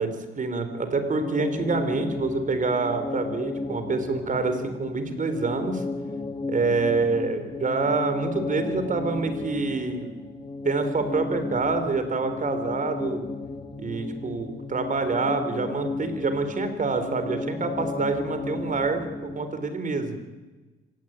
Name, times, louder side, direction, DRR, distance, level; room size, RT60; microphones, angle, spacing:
voice 1, 0.0-5.8 6.5-10.1 10.6-13.2 13.8-20.2, right 4 dB, 40° right, 9 dB, 4.4 m, -27 dB
sound 1, 0.9-19.7, left 3 dB, 25° left, 2.3 m, -34 dB
25.0 x 18.5 x 9.2 m, 1.2 s
cardioid pair, 90°, 20 cm